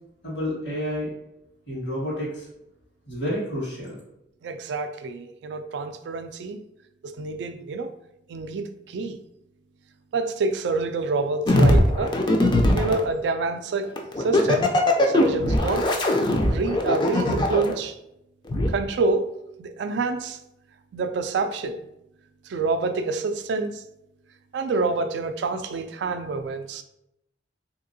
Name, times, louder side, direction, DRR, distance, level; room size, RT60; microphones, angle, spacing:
voice 1, 0.2-1.1 1.7-2.5 3.1-4.0, equal, 85° left, 1.5 m, -29 dB
voice 2, 4.4-6.6 7.0-7.9 8.3-9.2 10.1-12.2 12.7-13.9 14.2-14.7 15.1-15.9 16.5-18.0 18.7-19.3 19.6-20.4 20.9-21.8 22.5-23.8 24.5-26.8, right 3 dB, 70° right, 0.3 m, -27 dB
sound 1, 11.5-13.0 14.0-17.7 18.5-18.7, left 1 dB, 25° left, 0.4 m, -20 dB
3.5 x 2.8 x 2.6 m
head